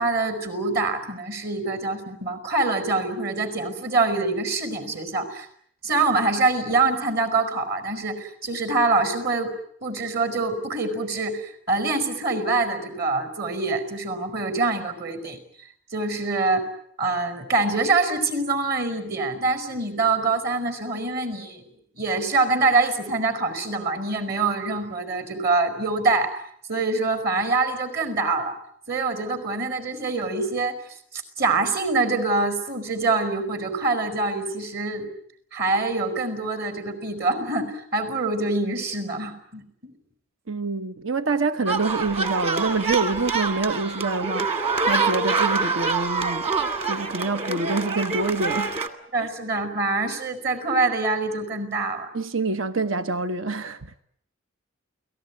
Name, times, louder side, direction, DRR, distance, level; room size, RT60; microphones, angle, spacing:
voice 1, 0.0-5.5 5.8-9.5 9.8-15.4 15.9-16.7 17.0-21.6 22.0-26.4 26.7-28.6 28.9-30.8 31.1-35.1 35.5-39.9 49.1-52.1, right 3 dB, 50° right, 5.3 m, -25 dB
voice 2, 40.5-46.5 46.9-48.9 49.2-49.3 52.1-54.0, right 3 dB, 80° right, 1.1 m, -26 dB
sound 1, 41.7-48.9, right 4 dB, 30° right, 2.2 m, -25 dB
29.0 x 19.0 x 9.6 m
head